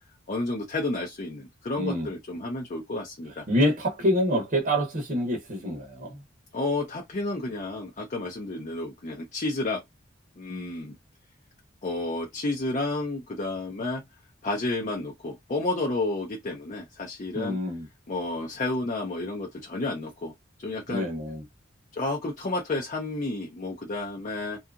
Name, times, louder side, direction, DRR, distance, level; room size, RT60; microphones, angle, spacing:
voice 1, 0.3-3.5 6.5-9.8 10.4-11.0 11.8-14.0 14.4-17.6 18.1-20.3 20.6-21.1 21.9-24.6, left 2 dB, 40° left, 0.6 m, -31 dB
voice 2, 1.8-2.1 3.5-6.2 17.3-17.9 20.9-21.4, equal, 45° right, 0.7 m, -26 dB
2.7 x 2.3 x 2.3 m
head